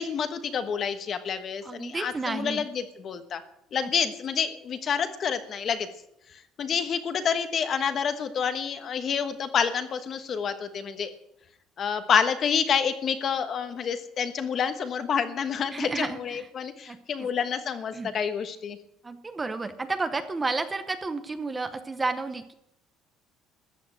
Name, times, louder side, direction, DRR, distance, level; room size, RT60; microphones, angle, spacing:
voice 1, 0.0-3.4 3.7-5.9 6.6-11.1 11.8-18.8, left 7 dB, 35° left, 9 dB, 1.2 m, -28 dB
voice 2, 1.6-2.7 15.7-16.5 16.9-17.3 17.9-18.1 19.0-22.5, right 3 dB, 15° right, 9 dB, 0.8 m, -31 dB
14.0 x 8.6 x 8.8 m, 0.82 s
cardioid pair, 155°, 0 cm